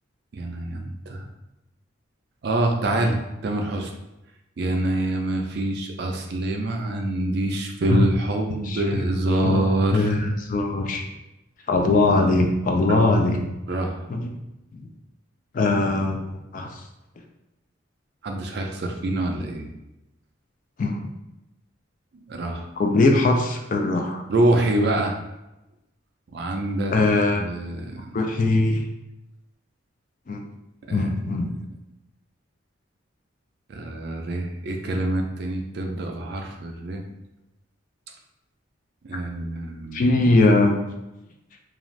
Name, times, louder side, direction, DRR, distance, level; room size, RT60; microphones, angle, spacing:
voice 1, 0.3-1.2 2.4-3.9 4.6-10.1 12.9-13.0 13.7-14.1 18.2-19.7 22.2-22.7 24.3-25.1 26.3-26.9 27.3-28.1 30.9-31.1 33.7-37.0 39.0-40.1, right 1 dB, 55° right, 3 dB, 0.4 m, -25 dB
voice 2, 9.9-11.0 11.7-13.4 14.1-14.3 15.5-16.8 20.8-21.1 22.8-24.2 26.9-27.4 28.1-28.8 30.3-30.4 30.9-31.5 39.9-40.8, left 2 dB, 40° left, 3 dB, 0.3 m, -21 dB
2.5 x 2.4 x 3.1 m, 0.95 s
head